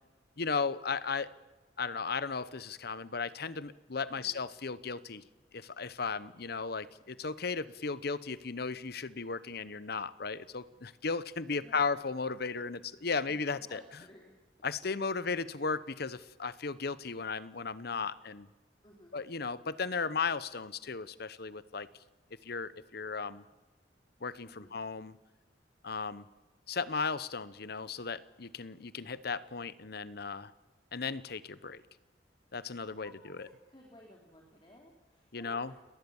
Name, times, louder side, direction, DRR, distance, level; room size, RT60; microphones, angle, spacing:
voice 1, 0.4-1.3 1.8-5.2 5.5-13.8 14.6-18.5 19.1-21.9 22.4-23.4 24.2-25.1 25.8-26.3 26.7-30.5 30.9-31.8 32.5-33.5 35.3-35.7, left 4 dB, 60° left, 17 dB, 1.0 m, -35 dB
voice 2, 4.1-4.4 11.5-12.0 13.7-14.3 18.8-19.2 24.5-24.8 32.9-33.4 33.7-35.9, left 1 dB, 25° left, 0 dB, 3.4 m, -56 dB
29.0 x 19.0 x 7.2 m, 1.2 s
head